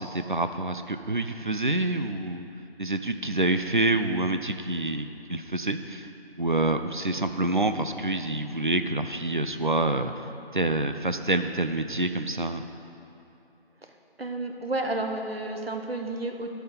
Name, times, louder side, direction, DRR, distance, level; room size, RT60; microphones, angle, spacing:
voice 1, 0.0-2.5 2.8-10.1 10.5-12.6, right 2 dB, 50° right, 8 dB, 0.6 m, -27 dB
voice 2, 14.2-16.5, right 2 dB, 65° right, 4 dB, 1.2 m, -31 dB
10.0 x 5.8 x 8.2 m, 2.9 s
figure-of-eight pair, 180°, 32 cm